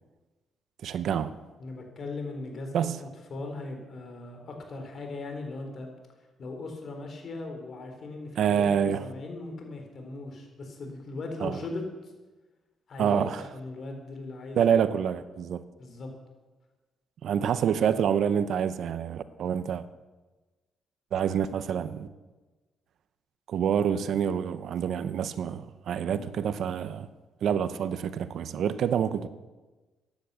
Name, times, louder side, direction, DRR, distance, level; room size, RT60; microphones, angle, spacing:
voice 1, 0.8-1.3 2.7-3.0 8.4-9.0 11.4-11.6 13.0-13.4 14.5-15.6 17.2-19.8 21.1-22.1 23.5-27.1 27.4-29.3, right 8 dB, 70° right, 0.8 m, -27 dB
voice 2, 1.6-5.9 6.4-11.9 12.9-14.8 15.8-16.1 26.1-26.3, left 2 dB, 50° left, 3.8 m, -39 dB
15.0 x 10.5 x 7.0 m
cardioid pair, 90°, 0 cm